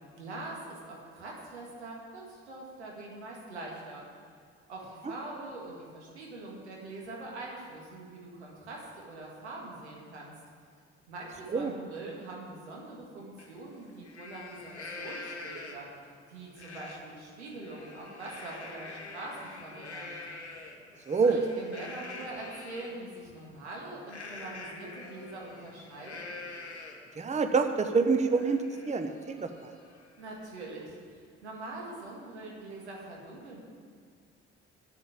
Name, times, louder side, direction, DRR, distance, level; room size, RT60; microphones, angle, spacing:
voice 1, 0.2-4.1 4.7-10.3 11.1-15.9 16.3-20.2 21.2-26.2 30.2-33.6, right 2 dB, 80° right, -2 dB, 2.0 m, -43 dB
Livestock farm animals working animals, 13.4-13.5 13.9-16.0 16.6-17.0 17.4-23.0 24.1-27.1 27.6-27.7 28.0-30.4, left 3 dB, 90° left, 0.9 m, -45 dB
voice 2, 21.1-21.4 27.2-29.7, right 4 dB, 20° right, 7 dB, 0.8 m, -27 dB
8.2 x 7.7 x 8.7 m, 2.1 s
figure-of-eight pair, 45°, 33 cm